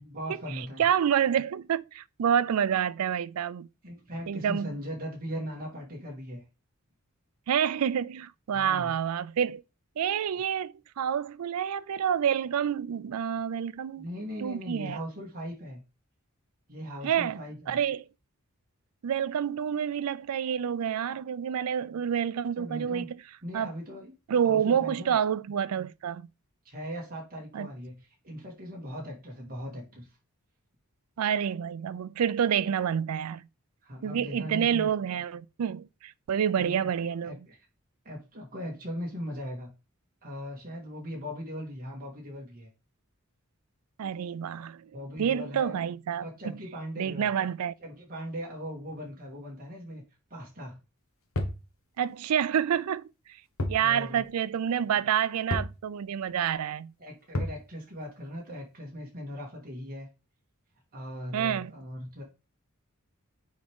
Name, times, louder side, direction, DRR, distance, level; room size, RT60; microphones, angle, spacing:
voice 1, 0.0-0.8 3.8-6.4 8.5-8.9 14.0-15.8 16.7-17.8 22.6-23.1 23.4-24.1 24.4-25.1 26.7-30.1 33.8-34.9 36.6-36.9 37.2-37.6 38.0-39.7 40.2-42.7 44.9-45.8 46.2-47.3 47.8-50.0 50.3-50.8 53.7-54.3 57.0-60.1 60.9-62.2, equal, 40° right, 1.8 m, -39 dB
voice 2, 0.6-3.7 4.3-4.7 7.5-9.6 10.0-14.1 14.4-15.0 17.0-17.4 17.7-18.0 19.0-23.2 23.5-23.7 24.3-26.3 27.5-27.7 31.2-33.4 34.0-37.3 44.0-44.9 45.2-46.2 47.0-47.7 52.0-53.1 53.7-56.9 61.3-61.7, right 8 dB, 90° right, 0.4 m, -28 dB
sound 1, 51.4-51.7 53.6-53.9 54.2-54.3 55.5-55.8 57.3-57.6, left 1 dB, 70° left, 1.3 m, -30 dB
6.3 x 4.7 x 3.6 m
head